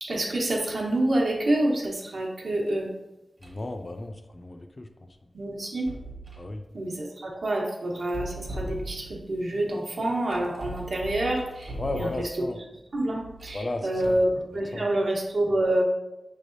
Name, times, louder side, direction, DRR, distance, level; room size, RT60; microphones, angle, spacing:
voice 1, 0.0-2.9 5.3-5.9 6.7-12.3 12.9-15.8, right 1 dB, 75° right, -2 dB, 1.0 m, -27 dB
voice 2, 3.4-4.9 6.4-6.6 11.8-12.6 13.5-14.2 14.7-14.9, left 2 dB, 40° left, 5 dB, 0.4 m, -34 dB
sound 1, 3.4-3.7 5.6-6.5 8.0-9.3 10.3-12.5 13.2-14.4, right 2 dB, 45° right, 1.2 m, -39 dB
5.7 x 3.3 x 2.6 m, 0.94 s
wide cardioid pair, 100°, 0 cm